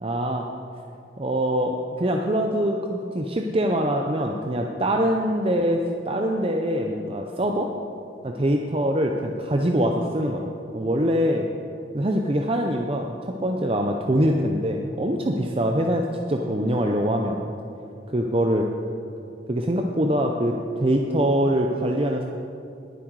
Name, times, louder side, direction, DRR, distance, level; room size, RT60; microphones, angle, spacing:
voice 1, 0.0-0.5 1.2-5.8 6.1-7.7 8.2-11.5 11.9-17.5 18.1-18.7 19.5-22.2, equal, 30° right, 2 dB, 0.6 m, -24 dB
19.5 x 7.6 x 4.7 m, 2.6 s
head